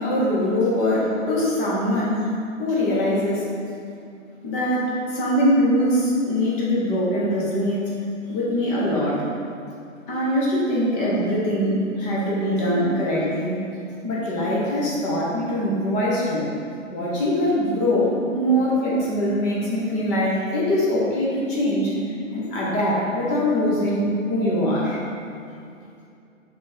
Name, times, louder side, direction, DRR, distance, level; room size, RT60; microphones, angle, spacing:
voice 1, 0.0-2.3 2.6-3.5 4.4-7.9 8.3-9.2 10.1-13.6 14.0-16.5 16.9-21.9 22.3-25.0, equal, 20° left, -6 dB, 1.1 m, -22 dB
6.0 x 3.7 x 4.4 m, 2.5 s
figure-of-eight pair, 135°, 40 cm